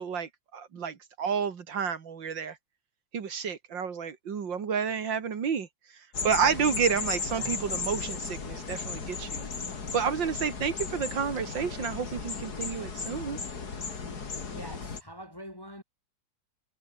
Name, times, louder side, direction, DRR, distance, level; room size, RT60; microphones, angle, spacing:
voice 1, 0.0-2.6 3.1-5.7 6.2-9.4 9.9-13.4, right 6 dB, 75° right, 2.7 m, -30 dB
sound 1, 6.1-15.0, left 5 dB, 55° left, 3.1 m, -35 dB
voice 2, 7.3-7.6 14.5-15.8, equal, 15° left, 1.5 m, -44 dB
omnidirectional pair, 2.0 m